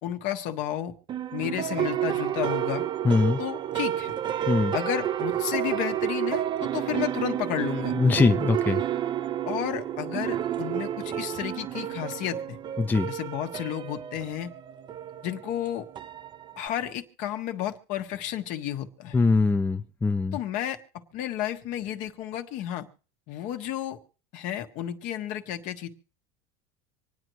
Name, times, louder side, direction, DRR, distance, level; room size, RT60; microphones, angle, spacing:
voice 1, 0.0-0.9 1.3-2.8 3.4-4.2 4.7-7.9 9.4-12.6 13.1-14.5 15.2-15.8 16.6-19.2 20.3-20.8 21.1-22.9 23.3-24.0 24.3-25.9, left 11 dB, 60° left, 6 dB, 1.3 m, -32 dB
sound 1, 1.1-16.7, right 11 dB, 30° right, 0.5 m, -30 dB
voice 2, 3.0-3.4 4.5-4.7 7.9-8.8 12.8-13.1 19.1-20.4, left 4 dB, 15° left, 6 dB, 0.6 m, -22 dB
26.0 x 9.2 x 3.1 m, 0.41 s
supercardioid pair, 120°, 14 cm